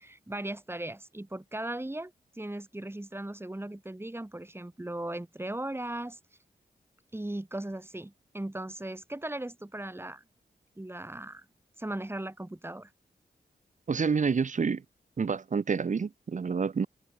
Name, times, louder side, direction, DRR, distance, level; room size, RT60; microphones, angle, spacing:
voice 1, 0.0-6.2 7.1-10.2 10.8-11.5 11.8-12.9, right 1 dB, 15° right, 3.0 m, -38 dB
voice 2, 13.9-14.8 15.2-16.9, right 5 dB, 45° right, 0.8 m, -28 dB
open air
cardioid pair, 55°, 18 cm